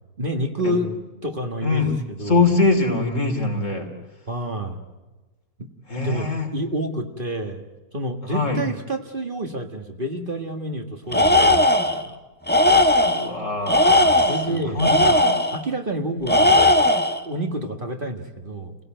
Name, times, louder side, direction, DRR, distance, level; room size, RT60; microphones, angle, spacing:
voice 1, 0.2-0.9 1.2-2.5 4.3-4.8 5.6-5.7 6.0-7.6 7.9-12.2 14.2-14.8 15.5-16.7 17.2-18.8, right 1 dB, 35° right, 4 dB, 1.8 m, -29 dB
voice 2, 1.6-3.9 5.9-6.5 8.2-8.6 13.0-15.4, left 3 dB, 55° left, 4 dB, 3.4 m, -23 dB
Tools, 11.1-12.0 12.5-13.3 13.7-15.6 16.3-17.2, left 1 dB, 10° left, 1.0 m, -17 dB
29.5 x 17.0 x 9.0 m, 1.2 s
omnidirectional pair, 1.6 m